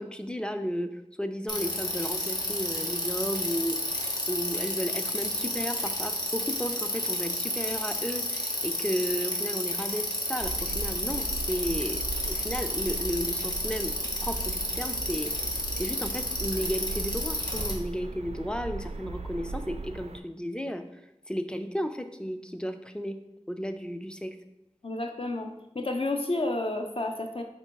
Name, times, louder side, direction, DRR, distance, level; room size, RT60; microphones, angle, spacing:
voice 1, 0.0-3.8 4.1-13.9 14.2-15.3 15.8-20.8 21.3-23.2 23.5-24.4, equal, 10° left, 8 dB, 0.4 m, -33 dB
Bicycle, 1.5-17.7, left 1 dB, 35° left, 1.0 m, -31 dB
sound 1, 10.4-20.2, right 3 dB, 65° right, 0.4 m, -38 dB
voice 2, 24.8-27.4, left 2 dB, 55° left, 4 dB, 0.6 m, -31 dB
4.2 x 2.8 x 4.5 m, 0.89 s
wide cardioid pair, 45°, 12 cm